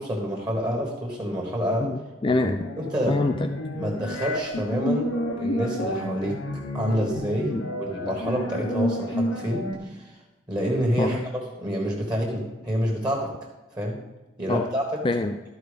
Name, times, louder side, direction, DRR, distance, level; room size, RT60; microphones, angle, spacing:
voice 1, 0.0-1.9 2.8-3.2 3.7-6.4 6.7-10.0 10.5-11.2 11.6-13.3 13.7-14.0 14.4-14.8, equal, 20° right, -1 dB, 1.5 m, -27 dB
voice 2, 1.8-2.6 3.1-3.5 7.5-7.7 11.0-11.2 14.5-14.6 15.0-15.3, left 2 dB, 25° left, 6 dB, 0.3 m, -25 dB
sound 1, 2.6-9.8, left 1 dB, 85° left, 1.3 m, -30 dB
13.0 x 4.6 x 5.1 m, 1.1 s
head